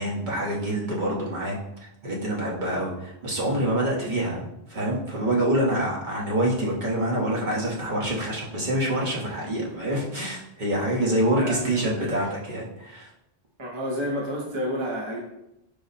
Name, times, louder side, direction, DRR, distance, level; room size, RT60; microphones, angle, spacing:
voice 1, 0.0-13.1, right 1 dB, 50° right, -4 dB, 1.1 m, -26 dB
voice 2, 11.4-12.3 13.6-15.2, equal, 35° right, -2 dB, 0.6 m, -30 dB
4.8 x 2.0 x 4.0 m, 0.86 s
omnidirectional pair, 1.0 m